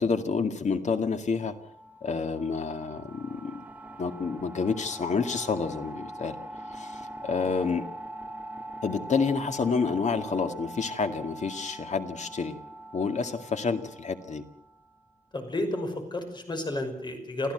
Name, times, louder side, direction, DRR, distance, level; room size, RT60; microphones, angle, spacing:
voice 1, 0.0-1.6 2.0-3.6 4.0-6.4 6.7-7.8 8.8-12.6 12.9-14.4, left 5 dB, 55° left, 7 dB, 2.1 m, -29 dB
sound 1, 1.5-15.0, right 1 dB, 10° right, 3.1 m, -42 dB
voice 2, 15.3-17.5, left 1 dB, 35° left, 5 dB, 5.7 m, -31 dB
28.0 x 15.5 x 8.0 m, 0.72 s
wide cardioid pair, 130°, 14 cm